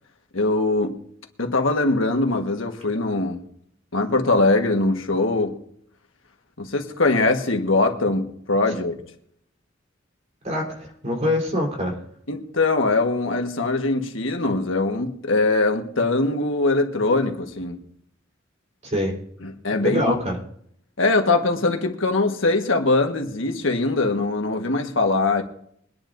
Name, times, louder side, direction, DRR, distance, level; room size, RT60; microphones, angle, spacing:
voice 1, 0.3-1.0 1.4-3.4 3.9-5.6 6.6-9.0 12.3-17.8 19.4-20.2 21.0-25.4, left 2 dB, 80° left, 1.5 m, -22 dB
voice 2, 10.4-12.0 18.8-19.2 19.8-20.4, left 1 dB, 35° right, 4.0 m, -24 dB
23.5 x 10.5 x 2.7 m
head